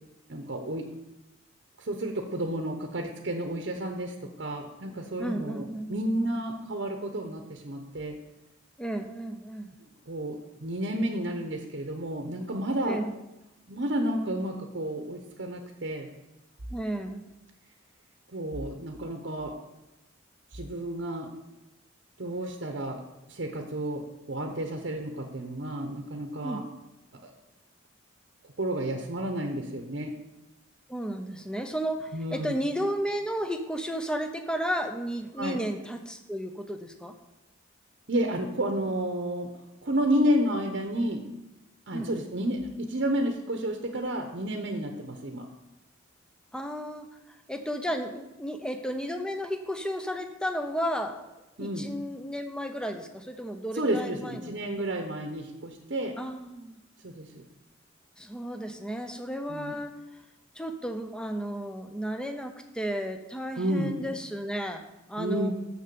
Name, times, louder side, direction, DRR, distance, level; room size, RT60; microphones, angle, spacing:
voice 1, 0.3-0.9 1.8-8.1 10.1-13.0 13.7-16.1 18.3-19.5 20.5-21.3 22.2-23.0 23.3-26.6 27.1-27.2 28.6-30.1 32.1-32.6 35.4-35.6 38.1-39.5 39.8-41.2 41.9-45.4 51.6-51.9 53.7-56.1 57.0-57.4 59.5-59.7 63.6-64.0 65.2-65.5, right 1 dB, 55° right, 3 dB, 0.9 m, -31 dB
voice 2, 5.2-6.4 8.8-9.7 12.9-13.1 16.7-17.2 26.4-26.6 30.9-37.1 41.9-42.1 46.5-51.3 51.6-54.5 56.2-56.8 58.2-59.9 60.5-64.8 65.1-65.5, equal, 5° left, 6 dB, 0.7 m, -33 dB
6.8 x 6.7 x 6.9 m, 0.96 s
head